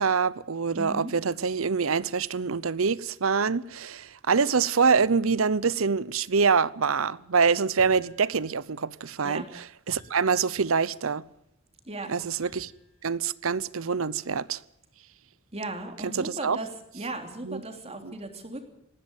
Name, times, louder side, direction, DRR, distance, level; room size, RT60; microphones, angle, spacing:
voice 1, 0.0-11.2 12.1-12.7 13.0-14.6 16.0-16.6 17.4-17.6 18.0-18.1, right 5 dB, 80° right, 0.8 m, -25 dB
voice 2, 0.8-1.1 9.2-9.4 11.8-12.1 15.5-16.7 16.9-18.6, right 2 dB, 30° right, 3.2 m, -36 dB
sound 1, 7.8-9.1 9.9-11.1 12.4-13.2, equal, 35° left, 6.6 m, -55 dB
19.0 x 16.5 x 8.9 m
head